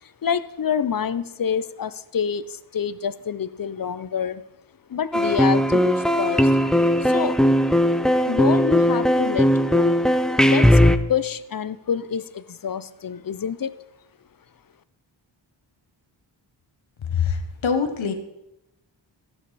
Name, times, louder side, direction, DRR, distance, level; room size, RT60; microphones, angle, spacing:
voice 1, 0.0-4.4 4.9-7.6 8.2-10.0 10.4-10.8 11.1-13.8, left 7 dB, 50° left, 16 dB, 0.6 m, -27 dB
sound 1, 5.1-11.0, equal, ahead, 0.4 m, -18 dB
voice 2, 17.1-18.1, left 6 dB, 80° left, 6 dB, 1.1 m, -24 dB
14.5 x 6.7 x 4.1 m, 0.91 s
wide cardioid pair, 65°, 46 cm